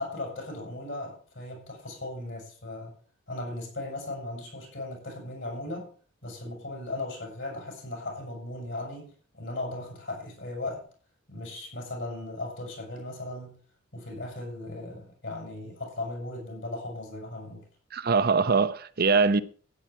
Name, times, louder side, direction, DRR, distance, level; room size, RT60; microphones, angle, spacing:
voice 1, 0.0-2.9 3.3-5.9 6.2-10.9 11.3-13.6 13.9-17.6, left 2 dB, 60° left, 7.1 m, -37 dB
voice 2, 17.9-19.4, right 4 dB, 50° right, 0.8 m, -22 dB
13.0 x 9.8 x 4.6 m
head